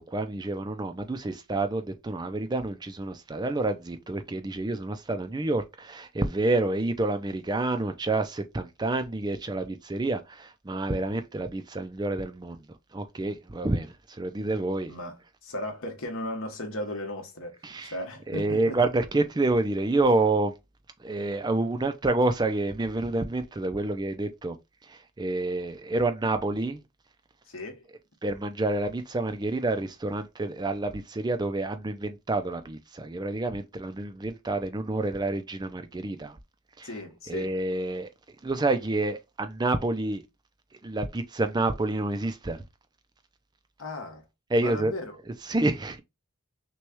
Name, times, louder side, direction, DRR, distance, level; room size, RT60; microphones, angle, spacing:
voice 1, 0.0-12.6 12.9-14.9 17.6-18.0 18.3-20.5 21.0-24.6 24.9-26.8 28.2-36.4 36.8-37.0 37.3-38.1 38.4-40.2 40.8-42.6 44.5-44.9 45.2-46.0, right 2 dB, 20° right, 0.4 m, -28 dB
voice 2, 14.9-18.8 27.5-27.8 36.8-37.5 43.8-44.2 44.6-45.2, left 1 dB, 70° left, 1.4 m, -36 dB
6.1 x 2.3 x 3.0 m
head